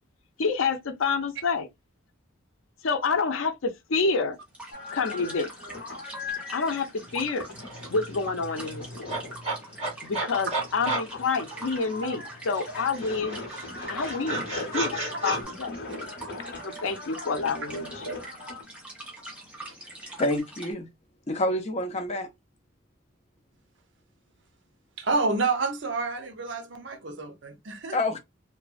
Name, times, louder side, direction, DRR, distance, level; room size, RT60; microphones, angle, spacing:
voice 1, 0.4-1.7 2.8-4.4 4.9-5.5 6.5-7.5 7.9-9.2 10.0-13.4 13.9-15.7 16.6-18.2, left 4 dB, 85° left, 0.5 m, -28 dB
sound 1, 4.5-20.7, right 1 dB, 5° right, 0.9 m, -44 dB
sound 2, 4.7-18.6, left 3 dB, 50° left, 0.9 m, -41 dB
sound 3, 7.2-7.3 7.6-12.2 12.5-15.4, right 2 dB, 35° right, 1.8 m, -33 dB
voice 2, 20.2-20.9 21.3-22.3 27.9-28.2, left 1 dB, 35° left, 0.6 m, -27 dB
voice 3, 25.0-28.0, right 3 dB, 65° right, 0.6 m, -29 dB
3.1 x 2.2 x 2.4 m
head